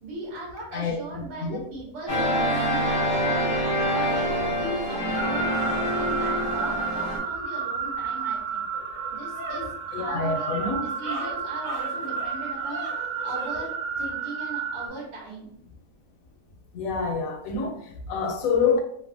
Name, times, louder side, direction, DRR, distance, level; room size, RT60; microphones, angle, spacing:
voice 1, 0.0-3.5 3.9-8.6 9.1-12.8 13.2-15.5, right 1 dB, 90° right, -5 dB, 1.4 m, -38 dB
voice 2, 0.7-1.6 9.9-10.8 16.7-18.8, left 5 dB, 70° left, 3 dB, 0.9 m, -27 dB
sound 1, 2.1-7.2, equal, 15° left, 0.6 m, -26 dB
sound 2, 5.1-14.9, right 6 dB, 70° right, 1.0 m, -31 dB
sound 3, 8.2-8.3 8.7-13.7, left 1 dB, 40° right, 0.8 m, -39 dB
3.0 x 2.1 x 2.5 m, 0.69 s
omnidirectional pair, 1.7 m